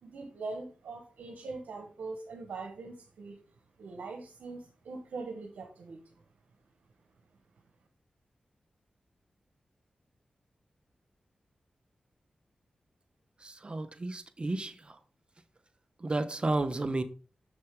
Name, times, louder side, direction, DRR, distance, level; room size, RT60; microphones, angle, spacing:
voice 1, 0.0-3.4 3.8-6.0, right 3 dB, 90° right, 1.1 m, -42 dB
voice 2, 13.4-15.0 16.0-17.0, right 2 dB, 40° right, 0.9 m, -32 dB
7.2 x 6.4 x 3.6 m
cardioid pair, 45°, 3 cm